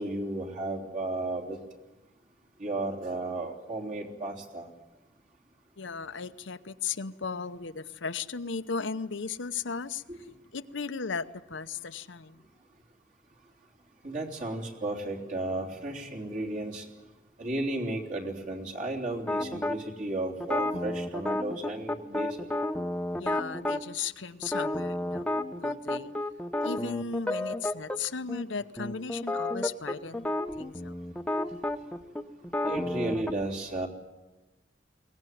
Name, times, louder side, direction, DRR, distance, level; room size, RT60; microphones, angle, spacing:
voice 1, 0.0-1.6 2.6-4.7 10.1-10.2 14.0-16.9 17.4-22.5 32.6-33.9, right 2 dB, 45° right, -1 dB, 3.5 m, -34 dB
voice 2, 5.8-10.0 10.5-12.4 20.7-20.8 23.2-25.3 25.6-26.1 26.6-30.9, left 5 dB, 85° left, 11 dB, 0.9 m, -36 dB
sound 1, 19.3-19.8 20.4-23.8 24.4-28.0 28.3-28.4 28.8-33.3, left 1 dB, 5° left, 0.8 m, -31 dB
22.5 x 18.5 x 9.4 m, 1.1 s
head